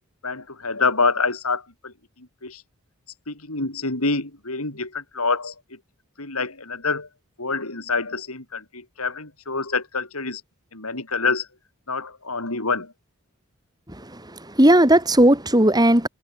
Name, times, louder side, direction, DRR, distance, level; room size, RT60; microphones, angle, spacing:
voice 1, 0.2-2.6 3.3-5.5 6.2-7.1 7.4-10.4 10.7-11.5 11.9-12.9, left 4 dB, 85° left, 5.8 m, -26 dB
voice 2, 14.5-16.1, right 1 dB, 20° right, 6.8 m, -16 dB
head